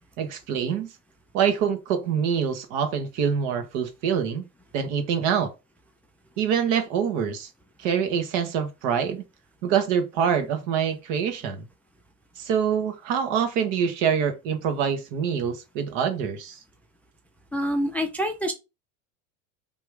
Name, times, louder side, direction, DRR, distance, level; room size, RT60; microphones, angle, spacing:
voice 1, 0.2-0.9 1.3-4.5 4.7-5.5 6.4-7.5 7.8-9.2 9.6-11.6 12.4-16.6, right 7 dB, 70° right, 1.4 m, -25 dB
voice 2, 17.5-18.5, equal, 5° left, 0.4 m, -26 dB
3.6 x 3.0 x 4.7 m
supercardioid pair, 130°, 40 cm